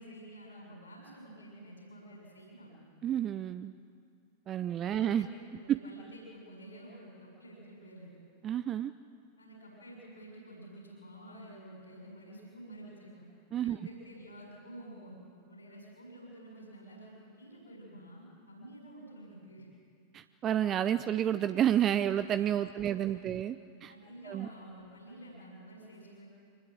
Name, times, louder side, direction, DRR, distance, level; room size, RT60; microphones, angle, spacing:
voice 1, 0.0-2.9 4.8-8.2 9.4-13.3 13.6-15.2 15.5-19.7 22.5-23.3 23.9-26.3, right 1 dB, 75° left, -1 dB, 6.6 m, -50 dB
voice 2, 3.0-3.7 4.5-5.3 5.7-5.8 8.4-8.9 13.5-13.8 20.1-23.9 24.3-24.5, right 10 dB, 30° right, 13 dB, 0.5 m, -30 dB
24.5 x 19.5 x 7.7 m, 2.3 s
figure-of-eight pair, 90°, 0 cm